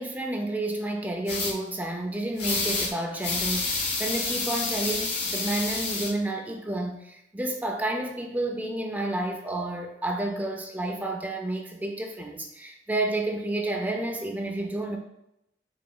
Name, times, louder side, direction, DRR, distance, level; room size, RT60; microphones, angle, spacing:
voice 1, 0.0-15.0, right 1 dB, 10° right, 2 dB, 0.4 m, -30 dB
sound 1, 1.3-1.5 2.4-2.9 3.2-6.1, left 3 dB, 65° left, 0.9 m, -28 dB
4.8 x 3.4 x 2.3 m, 0.83 s
head